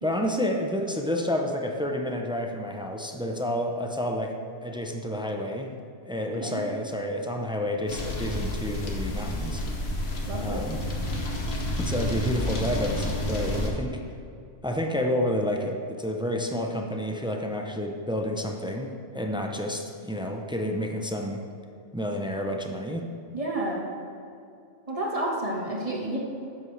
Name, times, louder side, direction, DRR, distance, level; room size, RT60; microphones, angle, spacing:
voice 1, 0.0-4.4 4.6-5.7 6.1-9.6 10.4-10.8 11.8-14.0 14.6-21.5 21.9-23.1, left 1 dB, 5° right, 2 dB, 0.4 m, -29 dB
sound 1, 7.9-13.7, left 1 dB, 65° left, 1.4 m, -30 dB
voice 2, 10.3-10.6 23.3-23.8 24.9-26.2, right 1 dB, 30° right, -3 dB, 1.5 m, -30 dB
10.5 x 7.4 x 3.3 m, 2.6 s
omnidirectional pair, 1.2 m